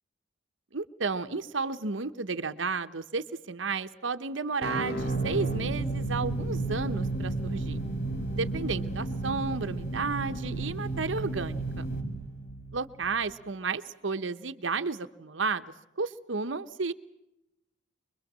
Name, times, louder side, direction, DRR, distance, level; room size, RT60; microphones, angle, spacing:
voice 1, 0.7-7.8 8.3-11.9 12.7-16.9, right 4 dB, 85° right, 10 dB, 1.0 m, -32 dB
sound 1, 4.6-13.3, right 2 dB, 55° left, 3.3 m, -32 dB
25.0 x 22.5 x 7.5 m, 0.86 s
head